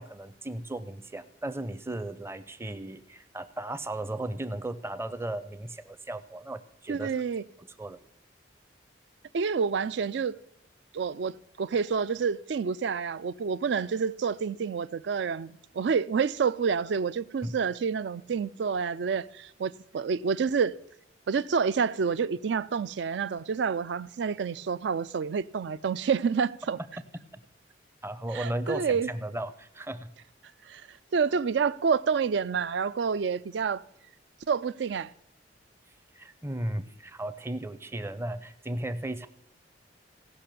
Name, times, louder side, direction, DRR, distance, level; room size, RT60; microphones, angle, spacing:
voice 1, 0.0-7.1 7.6-8.0 17.4-17.6 27.3-27.4 28.0-30.1 36.1-39.3, right 1 dB, 15° right, 0.6 m, -36 dB
voice 2, 6.9-7.4 9.3-10.4 10.9-20.8 21.3-26.8 28.3-29.1 30.7-30.8 31.1-33.8 34.5-35.1, right 6 dB, 65° right, 0.4 m, -28 dB
16.5 x 5.8 x 6.8 m
head